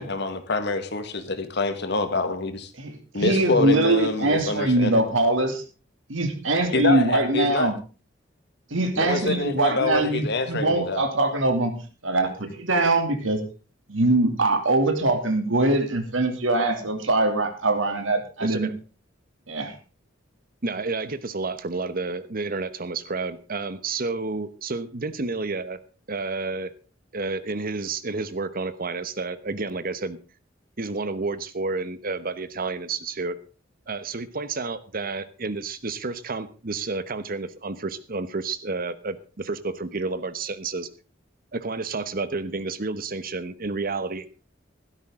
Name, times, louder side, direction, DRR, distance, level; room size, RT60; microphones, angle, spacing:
voice 1, 0.0-2.7 3.1-5.0 6.7-7.7 9.0-11.0, left 2 dB, 60° left, 9 dB, 1.8 m, -26 dB
voice 2, 2.8-5.6 6.1-7.8 8.7-13.4 13.9-18.7 19.5-19.7, right 2 dB, 80° right, 6 dB, 2.7 m, -23 dB
voice 3, 18.4-18.7 20.6-25.8 26.1-26.7 27.1-30.2 30.8-33.4 33.9-40.9 41.5-44.3, right 3 dB, 50° right, 14 dB, 1.1 m, -30 dB
15.5 x 13.0 x 3.8 m, 0.34 s
head